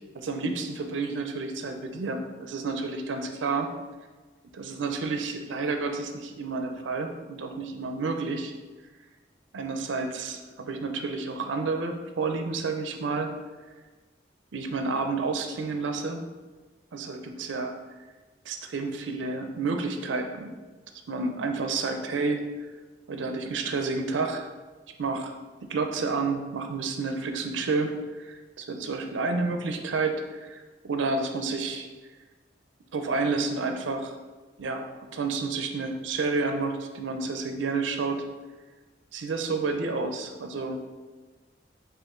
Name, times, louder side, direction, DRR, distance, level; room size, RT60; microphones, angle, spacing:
voice 1, 0.1-3.7 4.5-8.5 9.5-13.3 14.5-16.2 16.9-17.7 18.5-20.5 21.1-22.4 23.1-24.5 25.0-25.3 25.7-27.9 28.2-31.9 32.9-34.2 34.6-34.9 35.1-38.2 39.1-40.8, right 3 dB, 80° right, 5 dB, 0.5 m, -30 dB
5.2 x 2.5 x 3.7 m, 1.3 s
head